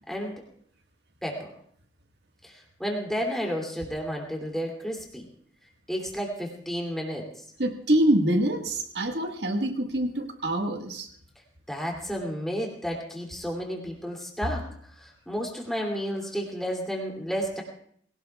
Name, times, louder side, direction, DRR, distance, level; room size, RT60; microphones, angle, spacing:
voice 1, 0.1-0.4 1.2-1.5 2.4-5.3 5.9-7.4 11.7-14.6 15.0-17.6, equal, ahead, -1 dB, 2.7 m, -32 dB
voice 2, 7.6-11.1, right 1 dB, 65° right, 4 dB, 1.6 m, -25 dB
22.5 x 17.0 x 2.3 m, 0.62 s
head